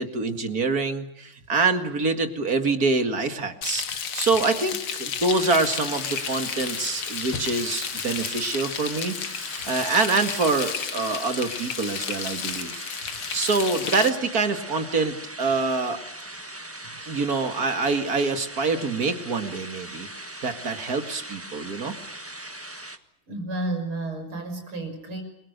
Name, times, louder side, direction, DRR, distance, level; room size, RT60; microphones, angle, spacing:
voice 1, 0.0-9.2 9.6-12.8 13.3-16.0 17.1-22.0, right 3 dB, 45° right, 8 dB, 2.4 m, -25 dB
Frying (food), 3.6-14.1, left 7 dB, 80° left, 2.4 m, -32 dB
sound 1, 5.3-23.0, right 1 dB, 10° right, 1.0 m, -40 dB
voice 2, 23.3-25.2, right 2 dB, 80° right, 5 dB, 7.0 m, -31 dB
30.0 x 23.0 x 6.7 m, 0.80 s
omnidirectional pair, 2.3 m